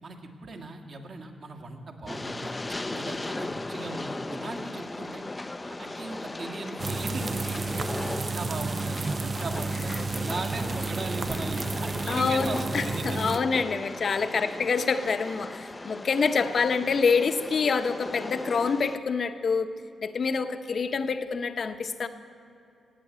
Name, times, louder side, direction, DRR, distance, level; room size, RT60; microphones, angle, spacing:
voice 1, 0.0-2.5 2.9-5.2 5.6-13.2 14.5-14.6, right 3 dB, 55° right, 3 dB, 1.8 m, -39 dB
Train, 2.1-19.0, left 2 dB, 20° left, 0.5 m, -37 dB
sound 1, 6.8-13.4, right 4 dB, 40° right, 0.4 m, -32 dB
voice 2, 12.1-22.1, left 5 dB, 55° left, 9 dB, 0.9 m, -26 dB
17.5 x 7.8 x 8.4 m, 2.7 s
cardioid pair, 90°, 0 cm